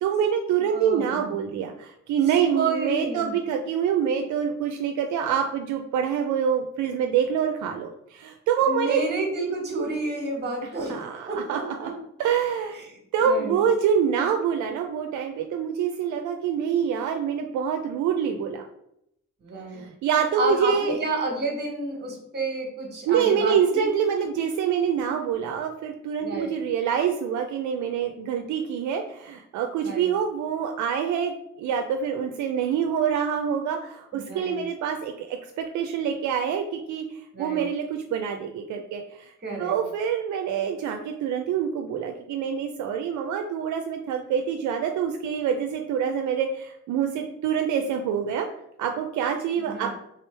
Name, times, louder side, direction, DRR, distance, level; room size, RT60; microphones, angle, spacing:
voice 1, 0.0-9.0 10.9-11.9 12.2-12.8 13.1-18.6 19.7-21.0 23.1-39.3 39.6-48.5 48.8-49.9, right 7 dB, 75° right, 4 dB, 0.5 m, -26 dB
voice 2, 0.6-1.3 2.5-3.3 8.6-11.0 11.3-11.9 12.7-13.6 19.4-19.8 20.3-23.8 26.2-26.6 29.8-30.1 34.1-34.6 37.3-37.7 39.4-39.7 49.6-49.9, right 3 dB, 35° right, 0 dB, 1.3 m, -30 dB
3.6 x 3.0 x 3.3 m, 0.77 s
cardioid pair, 90°, 30 cm